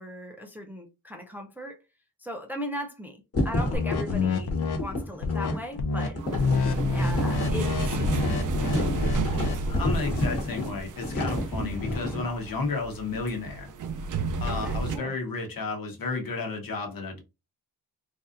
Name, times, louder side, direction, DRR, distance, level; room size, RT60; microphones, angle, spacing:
voice 1, 0.0-1.8 2.2-6.2 6.9-9.3 11.6-11.9 14.5-15.1, equal, 5° right, 0.5 m, -39 dB
sound 1, 3.3-12.3, left 1 dB, 40° left, 1.3 m, -30 dB
sound 2, 3.7-4.8 5.2-5.5 5.8-6.1 6.3-9.6, left 4 dB, 85° left, 0.8 m, -28 dB
sound 3, 6.2-15.0, right 3 dB, 55° right, 0.5 m, -32 dB
voice 2, 9.5-13.7 14.4-17.2, left 3 dB, 65° left, 1.2 m, -32 dB
3.9 x 2.7 x 2.5 m
wide cardioid pair, 135°, 37 cm